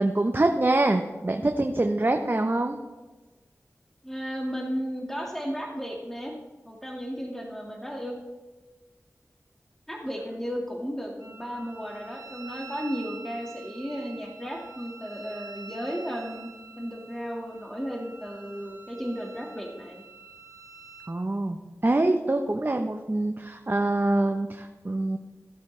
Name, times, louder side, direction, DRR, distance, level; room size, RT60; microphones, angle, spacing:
voice 1, 0.0-2.8 21.1-25.2, right 2 dB, 35° right, 4 dB, 0.9 m, -25 dB
voice 2, 4.0-6.4 6.6-8.2 9.9-16.5 16.8-20.0, equal, 5° left, -1 dB, 2.0 m, -34 dB
Wind instrument woodwind instrument, 11.2-21.1, right 4 dB, 85° right, 1.5 m, -47 dB
15.5 x 8.0 x 3.3 m, 1.3 s
cardioid pair, 45°, 6 cm